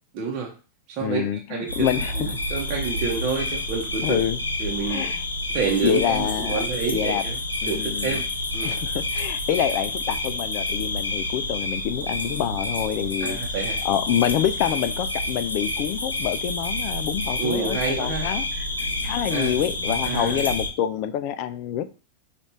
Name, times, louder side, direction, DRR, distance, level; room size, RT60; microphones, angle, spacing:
voice 1, 0.1-0.5 0.9-1.9 2.2-4.2 4.6-5.1 5.5-7.4 7.7-8.2 8.5-8.7 13.2-13.8 17.4-18.3 19.3-19.5 20.0-20.4, right 5 dB, 40° right, -1 dB, 0.8 m, -28 dB
voice 2, 1.0-2.4 4.0-4.4 4.8-5.2 5.8-6.6 6.9-7.2 7.6-8.2 8.6-13.4 13.8-18.7 19.0-21.9, left 10 dB, 45° left, 12 dB, 0.4 m, -26 dB
sound 1, 1.7-20.7, left 2 dB, 80° left, 0.7 m, -28 dB
5.1 x 2.4 x 3.2 m, 0.35 s
figure-of-eight pair, 90°, 0 cm